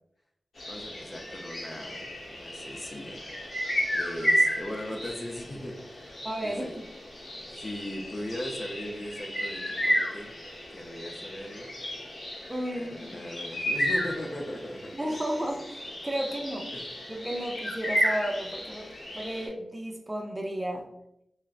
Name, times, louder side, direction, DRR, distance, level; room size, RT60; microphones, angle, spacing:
sound 1, 0.6-19.5, equal, 65° left, 0.8 m, -33 dB
voice 1, 0.7-3.3 3.5-3.7 3.9-6.8 7.1-10.3 10.7-11.7 12.7-15.2 16.7-16.9, left 1 dB, 35° left, 1 dB, 0.5 m, -39 dB
voice 2, 6.2-6.9 12.5-13.2 14.9-16.7 17.1-18.9 19.1-20.8, right 1 dB, 20° right, 2 dB, 0.5 m, -33 dB
3.5 x 2.1 x 2.4 m, 0.79 s
cardioid pair, 60°, 0 cm